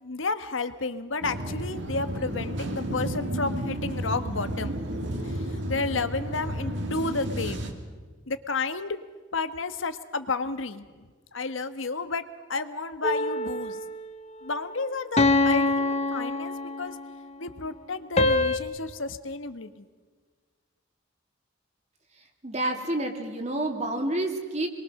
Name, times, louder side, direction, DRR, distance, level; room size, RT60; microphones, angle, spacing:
voice 1, 0.0-4.7 5.7-7.6 8.3-9.0 9.3-10.8 11.3-12.2 12.5-13.8 14.4-16.9 17.4-19.9, left 3 dB, 85° left, 10 dB, 1.4 m, -31 dB
sound 1, 1.2-7.7, right 1 dB, 65° right, 2.7 m, -32 dB
sound 2, 13.0-14.0 15.2-17.1 18.2-18.6, left 2 dB, 35° left, 1.0 m, -24 dB
voice 2, 22.4-24.7, right 1 dB, 35° right, 3 dB, 2.8 m, -29 dB
27.5 x 22.0 x 6.5 m, 1.4 s
head